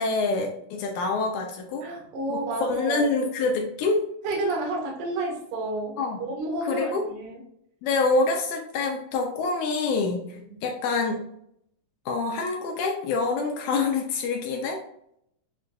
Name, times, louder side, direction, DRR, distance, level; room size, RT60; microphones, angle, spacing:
voice 1, 0.0-1.9 2.3-2.4 2.7-4.0 6.0-6.2 6.6-7.0 7.8-11.2 12.1-14.8, left 3 dB, 85° left, 2 dB, 1.9 m, -26 dB
voice 2, 1.8-3.1 4.2-5.9 6.2-7.4, right 2 dB, 65° right, -1 dB, 1.6 m, -30 dB
6.3 x 2.4 x 2.2 m, 0.70 s
omnidirectional pair, 3.4 m